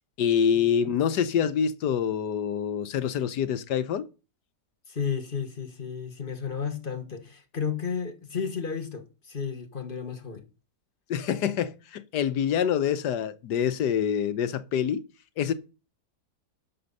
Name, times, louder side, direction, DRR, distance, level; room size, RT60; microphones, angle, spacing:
voice 1, 0.2-4.1 11.1-15.0 15.4-15.5, left 8 dB, 85° left, 1.4 m, -26 dB
voice 2, 4.9-10.4, left 6 dB, 35° left, 1.5 m, -33 dB
11.0 x 6.8 x 5.4 m
omnidirectional pair, 1.8 m